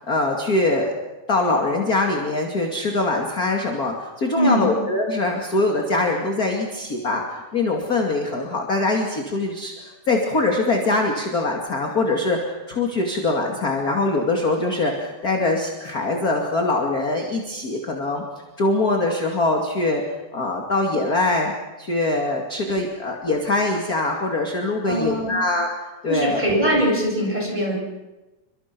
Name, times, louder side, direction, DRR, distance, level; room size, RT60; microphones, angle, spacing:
voice 1, 0.1-0.9 1.3-18.2 18.6-20.0 20.3-21.5 21.8-26.4, left 2 dB, 30° left, 1 dB, 2.6 m, -23 dB
voice 2, 4.3-4.7 24.9-25.4 26.1-27.8, equal, 10° right, -2 dB, 8.0 m, -22 dB
29.5 x 25.0 x 6.1 m, 1.1 s
omnidirectional pair, 3.6 m